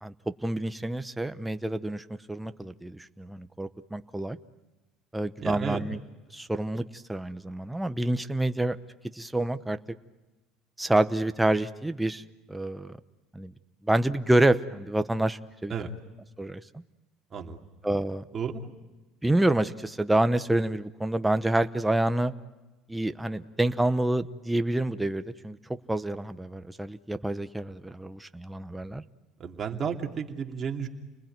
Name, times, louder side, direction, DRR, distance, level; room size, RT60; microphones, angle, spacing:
voice 1, 0.0-4.4 5.1-6.0 6.3-8.8 9.2-9.8 10.8-12.2 12.5-13.0 13.3-13.5 13.8-15.9 16.4-16.8 17.8-18.2 19.2-22.3 22.9-25.6 25.9-29.0, right 1 dB, 5° right, 9 dB, 0.9 m, -27 dB
voice 2, 5.4-5.8 15.7-15.9 17.3-17.6 18.3-18.6 29.4-30.9, right 7 dB, 30° right, 2 dB, 2.8 m, -32 dB
30.0 x 20.5 x 9.3 m, 1.1 s
cardioid pair, 125°, 0 cm